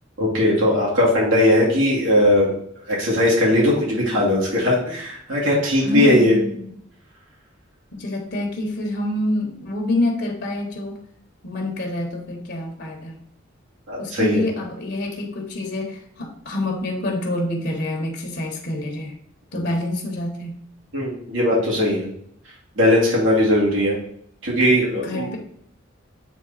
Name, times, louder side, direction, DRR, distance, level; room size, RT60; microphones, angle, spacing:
voice 1, 0.2-2.5 2.9-6.4 13.9-14.5 19.5-19.6 20.9-22.1 22.8-24.0 24.4-25.4, left 1 dB, 75° right, -4 dB, 2.4 m, -19 dB
voice 2, 5.8-6.7 7.9-11.0 11.4-13.2 14.0-19.1 19.5-20.6 24.9-25.4, left 1 dB, 55° left, 2 dB, 1.2 m, -27 dB
8.5 x 3.5 x 4.0 m, 0.68 s
head